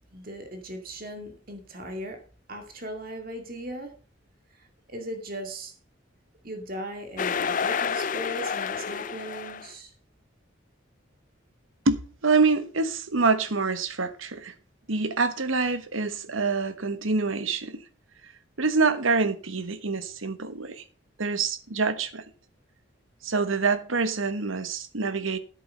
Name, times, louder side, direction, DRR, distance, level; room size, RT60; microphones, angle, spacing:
voice 1, 0.1-2.2 2.5-3.9 4.5-5.7 6.4-9.9, right 1 dB, 45° right, 2.3 m, -38 dB
sound 1, 7.2-9.7, left 6 dB, 40° left, 0.5 m, -29 dB
voice 2, 11.8-14.5 14.9-17.8 18.2-18.3 18.6-20.8 21.2-22.2 23.2-25.4, right 4 dB, 85° right, 1.3 m, -26 dB
10.5 x 8.3 x 5.3 m
head